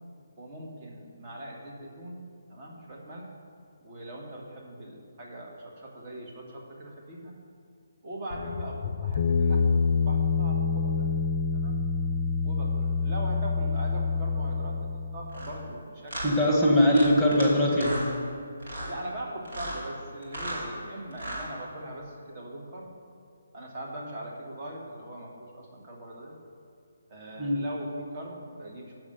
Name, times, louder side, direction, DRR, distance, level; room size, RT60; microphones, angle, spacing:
voice 1, 0.4-2.2 2.5-3.3 3.8-7.3 8.0-11.1 11.5-11.8 12.4-17.0 18.9-22.9 23.5-26.4 27.1-28.9, right 1 dB, 35° right, -1 dB, 1.7 m, -41 dB
sound 1, 8.3-15.7, left 5 dB, 50° left, 0.4 m, -27 dB
sound 2, 15.3-15.5 16.1-16.3 16.9-17.5 17.7-18.1 18.6-18.9 19.4-19.8 20.2-20.6 21.1-21.5, right 1 dB, 60° right, 2.3 m, -35 dB
voice 2, 16.2-18.0 27.4-27.6, equal, ahead, -2 dB, 1.5 m, -21 dB
7.1 x 6.2 x 6.7 m, 2.3 s
figure-of-eight pair, 145°, 0 cm